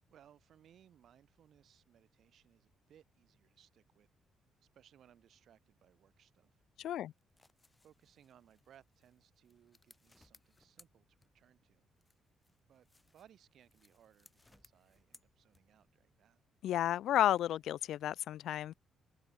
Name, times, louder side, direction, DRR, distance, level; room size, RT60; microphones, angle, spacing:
voice 1, 0.1-4.1 4.6-6.6 7.8-11.9 12.7-16.4, right 10 dB, 65° right, 6.4 m, -65 dB
voice 2, 6.8-7.1 16.6-18.7, left 12 dB, 75° left, 0.4 m, -32 dB
sound 1, 7.1-11.6 12.0-15.9, left 2 dB, 15° left, 3.0 m, -67 dB
open air
cardioid pair, 90°, 0 cm